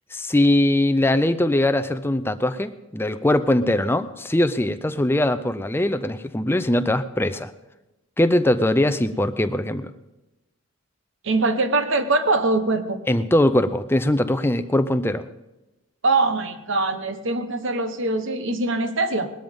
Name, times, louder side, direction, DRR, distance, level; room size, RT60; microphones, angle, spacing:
voice 1, 0.1-7.5 8.2-9.9 13.1-15.3, left 1 dB, 10° left, 11 dB, 0.5 m, -21 dB
voice 2, 11.2-13.0 16.0-19.3, right 2 dB, 55° right, 9 dB, 1.1 m, -22 dB
20.0 x 13.0 x 3.6 m, 1.0 s
head